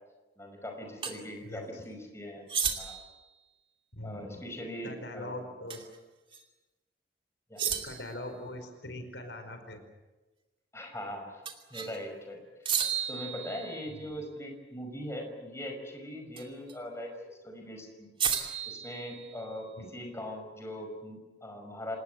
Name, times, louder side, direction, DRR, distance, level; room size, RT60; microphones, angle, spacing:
voice 1, 0.4-2.5 2.8-3.0 4.0-5.5 7.5-7.6 10.7-11.4 11.7-12.4 13.1-18.1 18.7-22.0, equal, 15° left, 3 dB, 5.5 m, -41 dB
sound 1, 1.0-1.2 2.5-3.2 5.7-6.0 6.3-6.4 7.6-8.2 11.5-12.0 12.7-14.0 16.4-16.7 18.2-19.6, right 7 dB, 30° right, 2.6 m, -33 dB
voice 2, 1.4-1.8 3.9-4.3 4.8-5.9 7.6-9.9 13.9-14.1 19.8-19.9, left 1 dB, 90° left, 7 dB, 5.0 m, -42 dB
27.5 x 20.0 x 8.3 m, 1.2 s
head